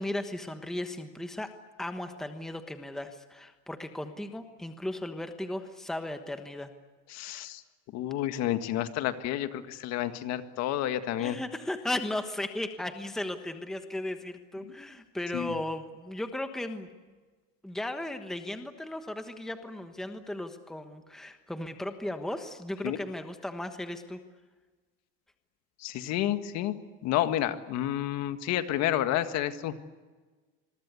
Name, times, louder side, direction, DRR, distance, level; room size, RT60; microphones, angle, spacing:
voice 1, 0.0-1.5 1.8-6.7 11.2-16.9 17.6-24.2, left 1 dB, ahead, 7 dB, 1.3 m, -36 dB
voice 2, 7.1-7.6 7.9-11.4 14.6-14.7 15.3-15.6 22.8-23.0 25.8-26.8 27.0-29.7, left 12 dB, 45° left, 9 dB, 1.8 m, -30 dB
26.5 x 22.5 x 8.4 m, 1.3 s
supercardioid pair, 155°, 36 cm